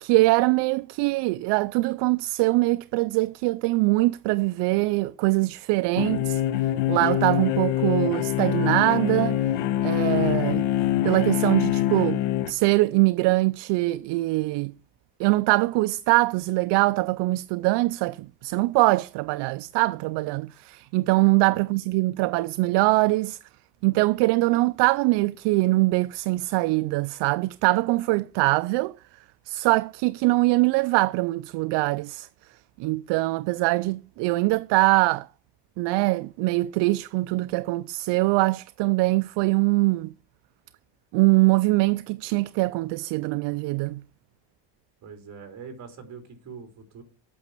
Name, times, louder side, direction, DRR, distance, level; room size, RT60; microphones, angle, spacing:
voice 1, 0.0-6.4 6.9-9.4 9.8-10.7 11.0-14.7 15.2-23.4 23.8-28.9 29.5-32.3 32.8-35.3 35.8-40.1 41.1-44.0, right 21 dB, 65° right, 0.5 m, -23 dB
sound 1, 6.0-12.5, left 13 dB, 85° left, 1.0 m, -24 dB
voice 2, 45.0-47.0, right 5 dB, 35° right, 3.1 m, -43 dB
8.6 x 6.1 x 8.1 m
cardioid pair, 165°, 46 cm